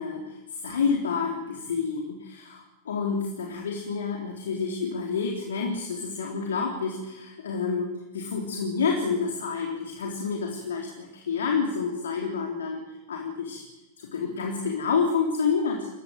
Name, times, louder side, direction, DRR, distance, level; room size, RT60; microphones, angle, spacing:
voice 1, 0.0-12.8 13.1-13.6 14.0-15.9, left 5 dB, 65° left, 1 dB, 3.8 m, -29 dB
29.0 x 16.5 x 8.1 m, 1.0 s
figure-of-eight pair, 90°, 0 cm